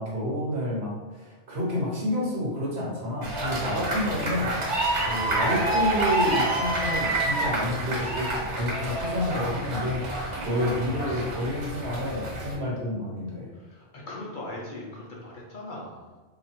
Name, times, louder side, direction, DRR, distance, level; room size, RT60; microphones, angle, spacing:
voice 1, 0.0-13.5, left 1 dB, 65° right, -4 dB, 1.3 m, -29 dB
sound 1, 3.2-12.5, right 2 dB, 80° right, 1.5 m, -28 dB
voice 2, 13.5-16.2, left 1 dB, 50° left, -4 dB, 0.8 m, -40 dB
3.0 x 2.4 x 4.3 m, 1.3 s
omnidirectional pair, 1.2 m